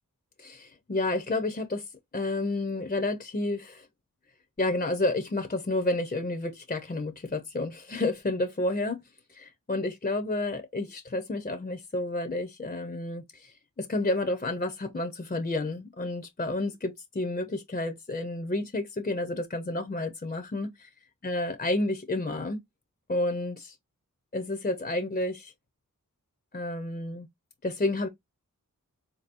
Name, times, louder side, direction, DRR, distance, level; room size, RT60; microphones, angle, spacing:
voice 1, 0.4-1.8 2.1-3.9 4.6-9.0 9.3-20.9 21.2-22.6 23.1-23.8 24.3-25.5 26.5-27.3 27.6-28.1, left 2 dB, 30° left, 0.7 m, -30 dB
4.0 x 2.8 x 2.5 m
wide cardioid pair, 50°, 33 cm